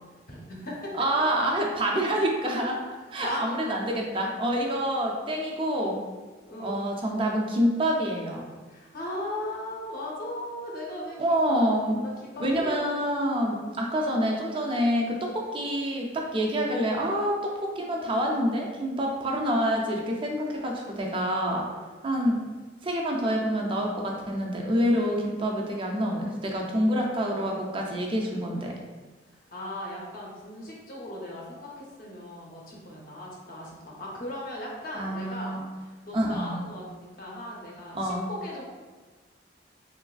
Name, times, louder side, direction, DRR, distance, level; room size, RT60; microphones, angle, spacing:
voice 1, 0.3-0.9 3.0-3.4 6.4-7.0 8.7-11.2 11.5-11.7 12.0-13.0 13.6-13.8 29.3-38.7, left 1 dB, 50° left, -4 dB, 0.6 m, -38 dB
voice 2, 0.9-2.8 3.1-6.0 6.6-8.4 11.2-12.0 12.4-21.7 22.0-22.4 22.8-28.7 35.0-35.6 36.1-36.6 37.9-38.3, equal, 25° right, 0 dB, 0.3 m, -27 dB
3.0 x 2.4 x 2.3 m, 1.3 s
head